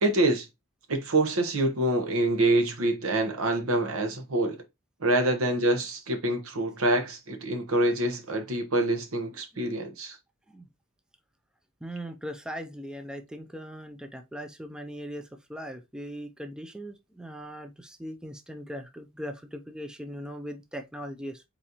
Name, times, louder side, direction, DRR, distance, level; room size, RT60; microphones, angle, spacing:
voice 1, 0.0-0.5 0.9-4.6 5.0-10.2, right 1 dB, 75° right, 1.0 m, -26 dB
voice 2, 11.8-21.4, equal, 5° right, 0.4 m, -39 dB
4.2 x 4.0 x 2.9 m
head